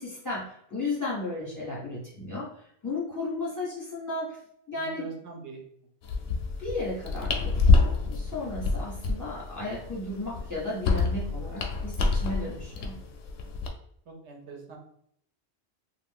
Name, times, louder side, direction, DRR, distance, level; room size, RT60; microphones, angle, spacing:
voice 1, 0.0-4.4 4.7-5.1 6.6-13.0, left 2 dB, 15° left, -7 dB, 1.4 m, -34 dB
voice 2, 4.8-5.6 6.1-6.2 14.1-14.8, right 3 dB, 90° right, 2 dB, 1.0 m, -44 dB
sound 1, 6.0-13.7, left 4 dB, 75° left, 0.8 m, -27 dB
2.5 x 2.4 x 3.5 m, 0.68 s
omnidirectional pair, 1.1 m